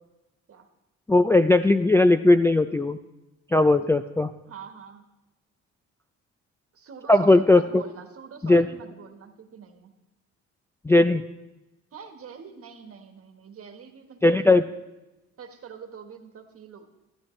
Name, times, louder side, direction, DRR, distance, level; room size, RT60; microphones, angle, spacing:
voice 1, 1.1-3.0 3.5-4.3 7.1-7.8 8.4-8.7 10.8-11.2 14.2-14.6, left 2 dB, 10° left, 7 dB, 0.3 m, -18 dB
voice 2, 4.5-5.0 6.7-9.9 11.9-14.6 15.4-16.9, right 6 dB, 50° right, 6 dB, 1.4 m, -44 dB
13.0 x 12.5 x 3.2 m, 1.0 s
cardioid pair, 90°, 30 cm